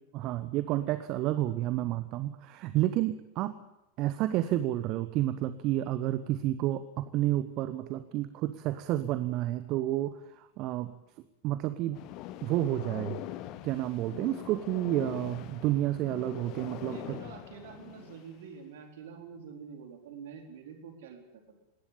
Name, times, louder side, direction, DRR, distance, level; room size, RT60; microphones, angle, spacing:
voice 1, 0.1-3.5 4.0-10.9 11.4-12.0 12.4-13.2 13.6-17.2, right 14 dB, 40° right, 12 dB, 1.0 m, -30 dB
sound 1, 11.9-18.3, left 14 dB, 40° left, 1.2 m, -43 dB
voice 2, 16.8-21.6, right 6 dB, 55° right, 4 dB, 4.3 m, -47 dB
20.0 x 18.0 x 8.7 m, 0.89 s
figure-of-eight pair, 90°, 0 cm